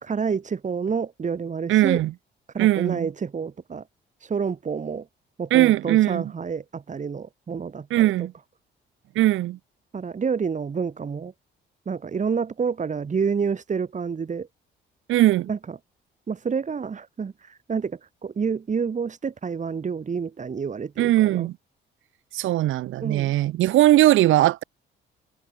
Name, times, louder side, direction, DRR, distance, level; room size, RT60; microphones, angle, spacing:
voice 1, 0.0-2.0 2.5-3.8 4.2-5.1 5.4-8.3 9.9-11.3 11.9-14.5 15.5-15.8 16.3-21.5 23.0-23.3, right 6 dB, 40° right, 2.7 m, -28 dB
voice 2, 1.7-2.1 2.6-3.1 5.5-6.2 7.9-8.3 9.1-9.6 15.1-15.5 21.0-21.5 22.3-24.6, right 15 dB, 80° right, 0.9 m, -19 dB
cardioid pair, 90°, 20 cm